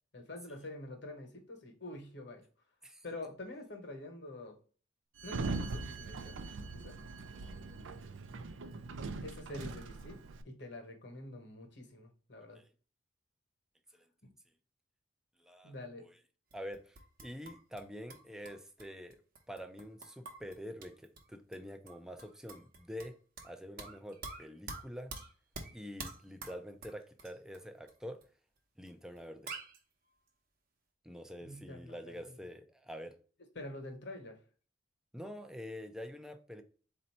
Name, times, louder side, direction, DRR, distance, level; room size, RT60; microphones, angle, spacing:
voice 1, 0.1-2.4 3.0-4.6 5.2-6.4 6.7-7.0 9.2-12.6 15.6-16.1 31.4-32.4 33.5-34.4, left 2 dB, 60° left, 1.3 m, -46 dB
Sliding door, 5.2-10.4, right 3 dB, 75° right, 0.4 m, -41 dB
voice 2, 15.4-15.7 16.0-16.1 16.5-19.2 19.5-23.1 23.4-25.1 25.7-28.2 28.8-29.5 31.0-33.1 35.1-36.6, equal, 5° right, 0.5 m, -46 dB
sound 1, 16.5-17.8 18.1-21.2 21.5-21.6 21.9-23.5 23.8-27.6 27.9-28.0 28.2-28.3 28.9-29.0 29.2-29.3 29.5-29.8, right 3 dB, 50° right, 0.9 m, -47 dB
4.2 x 2.7 x 4.2 m
head